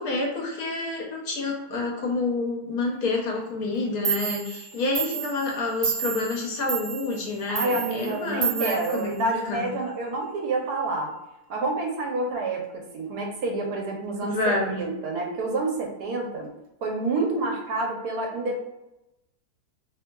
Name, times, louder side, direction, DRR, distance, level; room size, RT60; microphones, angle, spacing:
voice 1, 0.0-9.7 14.2-14.8, left 3 dB, 70° left, -1 dB, 1.3 m, -28 dB
Clock, 3.7-3.8 4.0-9.7, right 8 dB, 50° right, 1.3 m, -31 dB
voice 2, 7.5-11.1 11.5-16.5 16.8-18.7, right 2 dB, 75° right, 0 dB, 1.3 m, -28 dB
3.4 x 3.2 x 2.2 m, 0.91 s
omnidirectional pair, 1.7 m